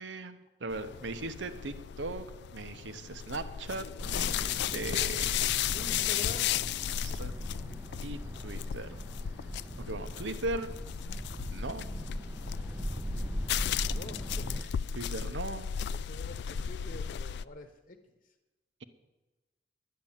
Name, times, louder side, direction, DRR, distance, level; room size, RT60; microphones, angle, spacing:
voice 1, 0.0-2.2 2.5-5.4 7.0-7.3 8.0-9.0 9.8-10.7 11.5-11.9 14.9-15.7, right 2 dB, 85° right, 10 dB, 0.9 m, -38 dB
sound 1, 0.7-17.4, left 9 dB, 65° left, 0.3 m, -35 dB
sound 2, 4.0-14.6, equal, 10° right, 0.5 m, -40 dB
voice 2, 5.7-7.4 13.6-14.6 15.9-18.1, left 2 dB, 45° left, 5 dB, 1.0 m, -47 dB
10.5 x 10.5 x 7.3 m, 1.1 s
head